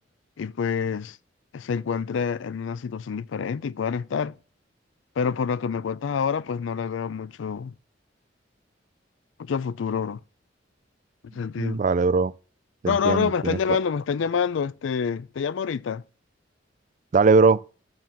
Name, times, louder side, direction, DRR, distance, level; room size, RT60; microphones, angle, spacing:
voice 1, 0.4-1.2 1.5-4.3 5.2-7.7 9.4-10.2 11.3-11.8 12.8-16.0, left 6 dB, 85° left, 0.4 m, -27 dB
voice 2, 11.6-12.3 12.8-13.8 17.1-17.7, right 4 dB, 40° right, 0.4 m, -20 dB
7.8 x 7.6 x 7.0 m
head